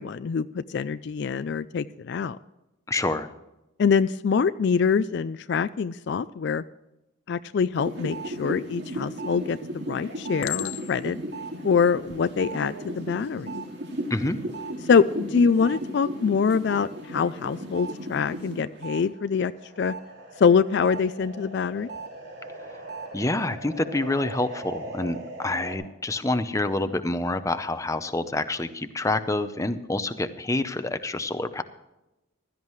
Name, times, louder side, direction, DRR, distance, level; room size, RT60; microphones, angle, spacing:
voice 1, 0.0-2.4 3.8-6.6 7.3-11.2 11.6-13.5 14.9-19.5 19.8-19.9 20.4-21.9, left 6 dB, 55° left, 13 dB, 0.3 m, -24 dB
voice 2, 2.9-3.3 14.1-14.4 23.1-31.6, left 2 dB, 15° left, 10 dB, 0.6 m, -27 dB
sound 1, 7.7-19.0 19.4-25.7, right 1 dB, 55° right, 2.4 m, -36 dB
Chink clink, 8.9-9.4 10.4-11.2 11.9-12.2, left 13 dB, 75° left, 0.7 m, -35 dB
16.0 x 12.5 x 3.1 m, 0.95 s
head